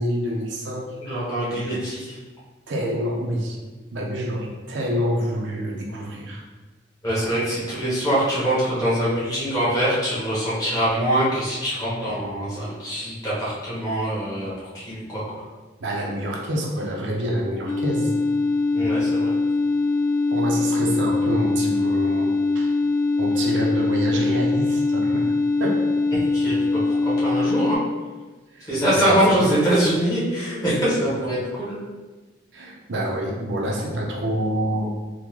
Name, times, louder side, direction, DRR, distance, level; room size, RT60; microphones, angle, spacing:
voice 1, 0.0-1.8 2.7-3.6 3.9-6.4 7.0-7.3 15.8-18.1 20.3-22.7 23.2-25.3 25.6-25.9 28.5-29.5 32.5-34.9, equal, 80° right, -1 dB, 0.6 m, -27 dB
voice 2, 1.0-2.2 7.0-15.2 18.7-19.3 26.1-26.6 26.9-27.8 28.7-31.8, right 1 dB, 20° left, -9 dB, 1.2 m, -23 dB
sound 1, 17.7-27.8, left 3 dB, 75° left, 0.5 m, -22 dB
3.6 x 2.2 x 3.1 m, 1.2 s
head